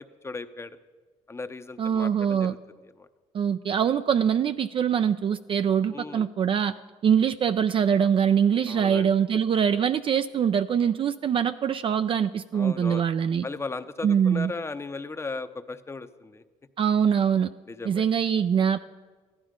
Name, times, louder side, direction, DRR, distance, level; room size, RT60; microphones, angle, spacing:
voice 1, 0.2-0.8 1.3-2.6 3.0-3.1 5.9-6.3 8.7-9.1 12.5-13.0 13.4-16.4 17.7-18.0, left 3 dB, 20° left, 11 dB, 0.7 m, -36 dB
voice 2, 1.8-2.5 3.3-6.7 7.0-13.5 14.0-14.5 16.8-17.5 17.9-18.8, right 8 dB, 45° right, 10 dB, 0.4 m, -23 dB
14.5 x 11.0 x 5.1 m, 1.4 s
cardioid pair, 90°, 13 cm